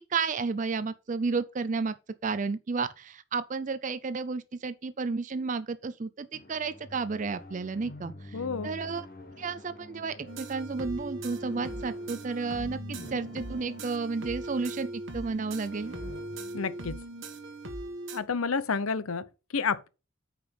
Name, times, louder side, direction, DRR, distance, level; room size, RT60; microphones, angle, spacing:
voice 1, 0.1-1.9 2.2-9.1 9.4-15.9, right 4 dB, 35° right, 0.4 m, -32 dB
sound 1, 6.3-18.0, left 1 dB, 40° left, 1.2 m, -47 dB
voice 2, 8.3-8.7 16.5-17.0 18.1-19.2 19.5-19.9, left 5 dB, 80° left, 0.7 m, -30 dB
sound 2, 10.3-18.2, right 2 dB, 60° right, 1.3 m, -40 dB
8.7 x 5.1 x 5.2 m
head